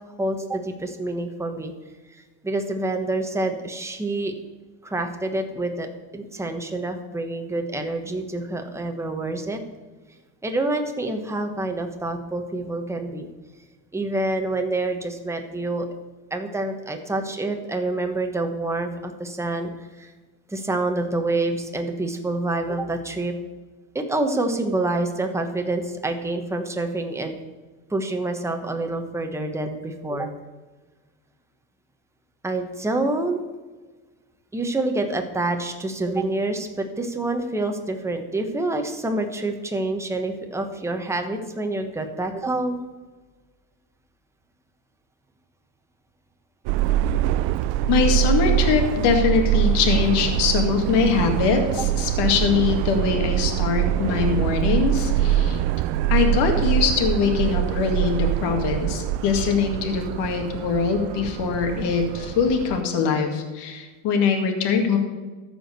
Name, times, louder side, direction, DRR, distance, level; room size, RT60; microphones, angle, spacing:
voice 1, 0.2-1.7 2.4-4.3 4.8-5.9 6.1-9.6 10.4-13.3 13.9-15.9 16.3-20.1 20.5-23.3 23.9-27.4 27.9-30.3 32.4-33.4 34.5-42.8, right 2 dB, 5° right, 4 dB, 1.2 m, -27 dB
Subway metro underground, 46.7-62.8, right 11 dB, 70° right, 0.6 m, -24 dB
voice 2, 47.9-55.6 56.1-65.0, left 6 dB, 65° left, 4 dB, 2.1 m, -22 dB
13.5 x 5.0 x 6.8 m, 1.3 s
supercardioid pair, 110°, 44 cm